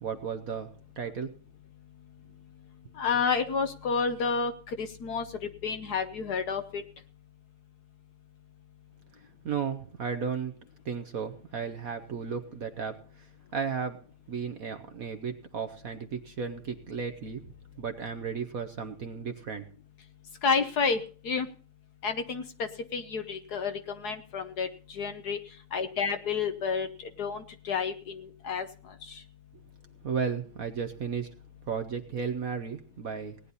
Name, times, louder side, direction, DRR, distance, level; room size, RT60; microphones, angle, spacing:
voice 1, 0.0-1.4 9.4-10.5 10.8-13.3 13.5-14.0 14.3-17.4 17.8-19.7 30.0-31.3 31.7-33.4, right 6 dB, 55° right, 8 dB, 1.1 m, -34 dB
voice 2, 3.0-4.5 4.8-5.3 5.6-6.8 20.4-21.0 21.2-21.5 22.0-25.4 25.7-26.9 27.2-28.7 29.1-29.2, left 5 dB, 60° left, 8 dB, 1.3 m, -30 dB
18.5 x 9.9 x 4.0 m, 0.39 s
omnidirectional pair, 2.2 m